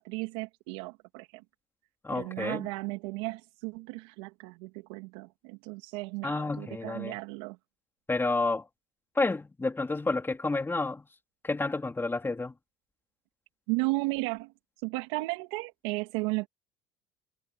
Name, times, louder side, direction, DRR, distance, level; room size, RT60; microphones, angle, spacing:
voice 1, 0.0-1.4 2.1-7.6 13.7-14.5 14.8-16.5, right 25 dB, 80° right, 2.3 m, -34 dB
voice 2, 2.0-2.7 6.2-7.1 8.1-8.7 9.1-11.1 11.4-12.5, left 3 dB, 15° left, 3.0 m, -30 dB
supercardioid pair, 80°, 14 cm